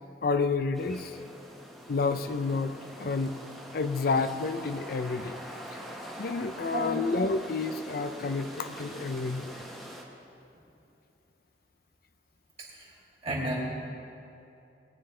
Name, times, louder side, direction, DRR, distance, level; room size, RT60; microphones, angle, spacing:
voice 1, 0.2-1.2 1.9-2.7 3.0-3.4 3.7-5.4 6.2-9.5, left 4 dB, 55° left, 10 dB, 0.5 m, -29 dB
sound 1, 0.7-10.0, equal, ahead, 1.3 m, -44 dB
voice 2, 13.2-13.6, right 1 dB, 35° right, -5 dB, 2.8 m, -31 dB
20.0 x 9.7 x 3.3 m, 2.7 s
head